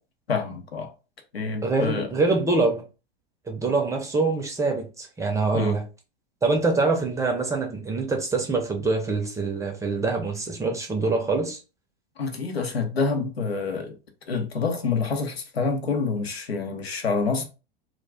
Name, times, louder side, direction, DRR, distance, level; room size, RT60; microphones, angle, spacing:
voice 1, 0.3-0.9 1.3-2.1 5.5-5.8 12.2-14.0 14.3-17.5, left 4 dB, 80° left, 0.7 m, -27 dB
voice 2, 1.6-2.8 3.5-5.8 6.4-11.6, right 3 dB, 10° right, 0.5 m, -24 dB
2.4 x 2.1 x 3.4 m
figure-of-eight pair, 90°, 30 cm